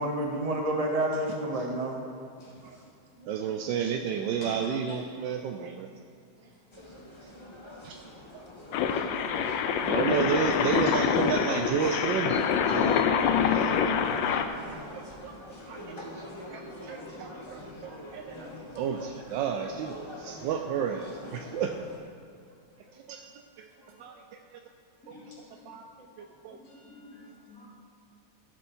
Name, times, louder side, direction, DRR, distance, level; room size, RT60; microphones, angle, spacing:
voice 1, 0.0-2.0 3.2-3.5 8.4-8.5 17.6-17.7, right 1 dB, 25° right, 0 dB, 0.8 m, -30 dB
voice 2, 2.4-2.8 4.4-4.9 10.0-10.1 16.5-16.6 17.3-18.5 18.8-18.9 22.7-23.2 24.0-24.2 25.0-25.6 26.5-27.7, left 2 dB, 50° left, -7 dB, 2.9 m, -49 dB
voice 3, 3.3-5.9 7.2-7.3 7.6-8.0 8.3-8.4 9.9-13.9 14.3-14.5 15.0-15.3 15.7-18.5 18.7-21.8 22.9-23.7 24.0-24.6 25.7-25.8 26.2-26.6, right 7 dB, 80° right, 5 dB, 1.3 m, -32 dB
sound 1, 6.7-22.0, left 1 dB, 20° left, 1.0 m, -45 dB
sound 2, 8.7-14.5, left 7 dB, 80° left, 1.4 m, -26 dB
14.0 x 8.0 x 4.4 m, 2.4 s
omnidirectional pair, 2.0 m